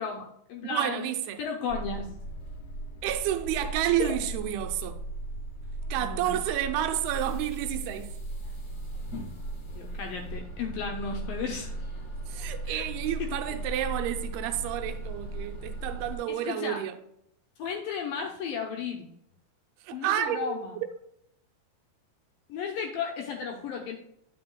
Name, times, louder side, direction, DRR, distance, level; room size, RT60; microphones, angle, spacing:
voice 1, 0.0-1.1 1.4-2.1 4.0-4.2 6.0-6.4 9.7-11.7 12.7-12.9 13.2-13.4 16.3-16.8 17.6-19.1 19.9-20.8 22.5-24.0, left 6 dB, 75° left, 2.3 m, -34 dB
voice 2, 0.7-1.4 3.0-5.0 5.9-8.1 12.3-17.0 19.8-20.7, right 11 dB, 80° right, 2.6 m, -30 dB
sound 1, 1.7-16.2, right 2 dB, 35° left, 1.6 m, -37 dB
9.4 x 7.7 x 2.3 m
omnidirectional pair, 4.6 m